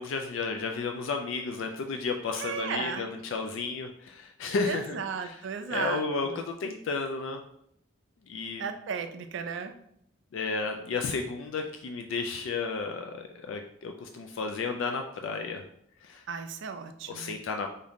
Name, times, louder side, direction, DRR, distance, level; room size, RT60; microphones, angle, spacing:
voice 1, 0.0-5.4 5.7-7.4 8.3-8.6 10.3-15.6 16.0-16.2 17.1-17.7, left 4 dB, 65° left, 4 dB, 0.3 m, -33 dB
voice 2, 2.4-3.1 4.7-6.4 8.6-9.7 16.3-17.3, right 6 dB, 60° right, 8 dB, 0.4 m, -35 dB
3.6 x 2.7 x 3.5 m, 0.72 s
head